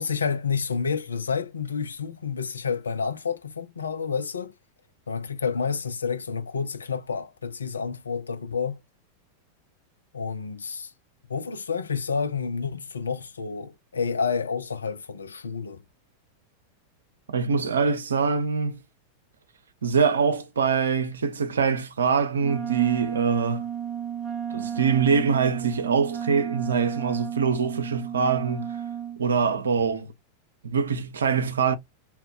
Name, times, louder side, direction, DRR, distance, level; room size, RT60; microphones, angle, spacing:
voice 1, 0.0-4.5 5.1-8.8 10.1-10.9 11.3-15.8 29.8-30.1, left 6 dB, 75° left, 0.5 m, -29 dB
voice 2, 17.3-18.8 19.8-23.7 24.5-28.8 29.2-30.1 30.6-31.7, right 6 dB, 70° right, 0.5 m, -24 dB
Wind instrument woodwind instrument, 22.4-29.2, right 9 dB, 20° right, 0.6 m, -33 dB
2.8 x 2.2 x 3.7 m
figure-of-eight pair, 90°, 0 cm